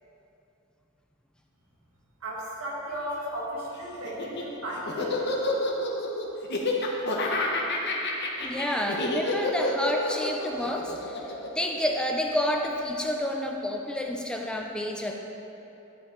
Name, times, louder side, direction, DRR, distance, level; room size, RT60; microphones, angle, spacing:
voice 1, 2.2-5.2, right 1 dB, 75° right, -5 dB, 1.8 m, -35 dB
Laughter, 4.0-12.5, left 2 dB, 50° left, 0.9 m, -29 dB
voice 2, 8.4-15.1, left 1 dB, 5° left, 1 dB, 0.4 m, -29 dB
11.0 x 5.3 x 3.8 m, 2.9 s
head